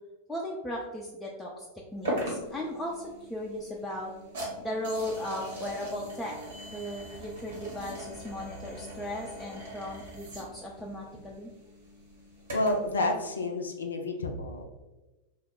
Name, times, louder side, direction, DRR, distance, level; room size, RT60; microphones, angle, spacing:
voice 1, 0.3-1.7 1.9-4.1 4.6-6.4 6.7-11.5, left 1 dB, 5° left, -3 dB, 0.4 m, -37 dB
sound 1, 2.0-12.9, equal, 65° right, 1.0 m, -40 dB
voice 2, 12.5-14.6, left 2 dB, 70° left, 4 dB, 0.4 m, -29 dB
2.8 x 2.1 x 3.8 m, 1.1 s
figure-of-eight pair, 90°, 0 cm